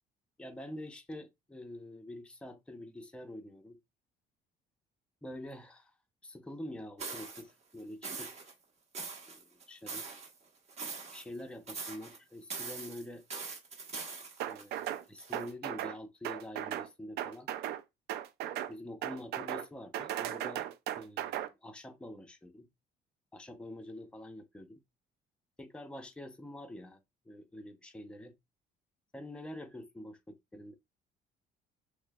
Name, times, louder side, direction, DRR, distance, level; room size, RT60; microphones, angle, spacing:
voice 1, 0.4-3.8 5.2-5.9 6.2-8.3 9.3-10.1 11.1-13.2 14.4-17.5 18.7-20.7 21.0-22.7 23.3-24.8 25.6-28.3 29.1-30.7, left 1 dB, 5° left, 0.6 m, -46 dB
sound 1, 7.0-7.4 8.0-8.5 8.9-10.3 10.7-11.4 11.7-12.2 12.5-15.5, right 4 dB, 40° right, 1.2 m, -42 dB
sound 2, 14.4-15.0 15.3-16.0 16.2-16.9 17.2-17.8 18.1-18.7 19.0-19.7 19.9-21.5, right 12 dB, 75° right, 0.4 m, -36 dB
5.8 x 2.1 x 2.2 m
cardioid pair, 110°, 17 cm